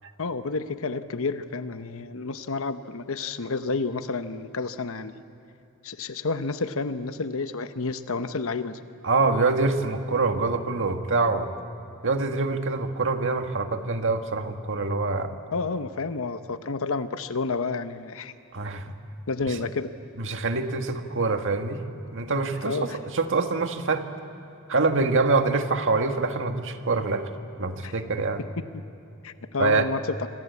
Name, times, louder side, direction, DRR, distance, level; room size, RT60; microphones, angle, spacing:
voice 1, 0.2-5.1 5.8-8.8 15.5-18.3 19.3-19.9 22.6-23.0 27.8-28.0 28.4-28.7 29.2-30.3, left 3 dB, 65° left, 10 dB, 1.0 m, -30 dB
voice 2, 9.0-11.5 12.0-15.3 18.5-18.9 19.5-19.6 20.2-21.8 22.1-24.0 24.7-27.3 27.6-28.4 29.6-29.8, right 3 dB, 60° right, 6 dB, 1.8 m, -25 dB
27.0 x 26.0 x 8.4 m, 2.8 s
head